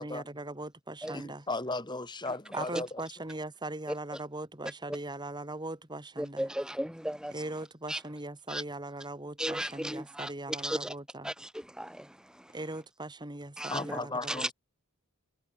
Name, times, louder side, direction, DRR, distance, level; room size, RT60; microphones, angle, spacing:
voice 1, 0.0-1.5 2.5-6.5 7.3-11.3 12.5-14.5, right 2 dB, 20° right, 2.0 m, -40 dB
voice 2, 1.1-3.0 13.7-14.5, left 2 dB, 20° left, 4.1 m, -36 dB
voice 3, 6.2-7.4 7.9-8.0 8.5-8.6 9.4-10.9 11.2-12.5 13.6-14.0 14.3-14.5, right 1 dB, 5° right, 1.7 m, -35 dB
head